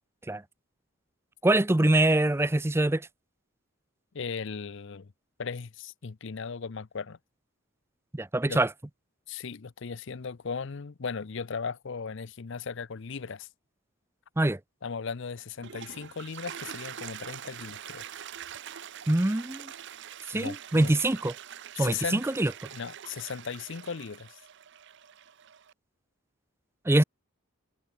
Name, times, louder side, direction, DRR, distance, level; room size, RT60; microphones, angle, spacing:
voice 1, 1.4-3.1 8.1-8.7 14.4-14.6 19.1-19.7 20.3-21.3 21.8-22.5 26.9-27.0, right 1 dB, 10° right, 0.5 m, -24 dB
voice 2, 4.1-5.1 5.4-7.2 8.5-8.6 9.3-13.5 14.8-18.0 20.3-20.9 21.8-22.2 22.7-24.4, left 5 dB, 60° left, 0.6 m, -37 dB
Toilet flush, 15.4-25.7, right 9 dB, 55° right, 0.7 m, -44 dB
head